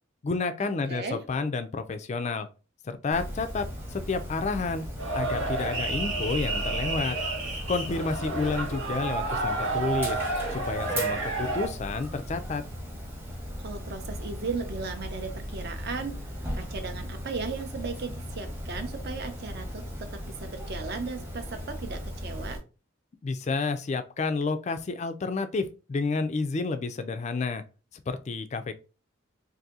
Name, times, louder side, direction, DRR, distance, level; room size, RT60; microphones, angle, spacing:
voice 1, 0.2-2.5 2.8-4.8 5.1-7.2 7.7-10.2 10.5-12.6 23.2-27.6 28.1-28.7, left 4 dB, 35° left, 0.3 m, -30 dB
voice 2, 0.9-1.2 13.6-22.6, right 4 dB, 50° right, 0.6 m, -36 dB
Dog, 3.1-22.6, equal, 10° right, 0.8 m, -37 dB
sound 1, 5.0-11.7, right 3 dB, 70° right, 1.0 m, -31 dB
2.7 x 2.6 x 3.6 m
head